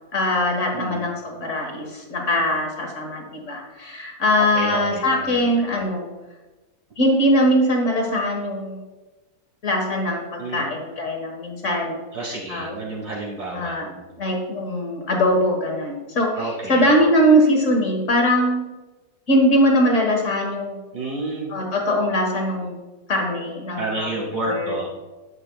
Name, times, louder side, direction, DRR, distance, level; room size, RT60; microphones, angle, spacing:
voice 1, 0.1-6.1 7.0-8.8 9.6-12.7 13.5-13.9 14.2-18.7 19.3-20.8 21.5-22.8 23.1-24.8, equal, 50° left, 1 dB, 1.8 m, -21 dB
voice 2, 0.7-1.0 4.4-5.5 10.4-10.7 12.1-14.2 16.4-16.9 20.9-21.5 23.8-24.9, right 2 dB, 55° right, -4 dB, 2.2 m, -30 dB
11.0 x 7.5 x 2.3 m, 1.2 s
omnidirectional pair, 1.7 m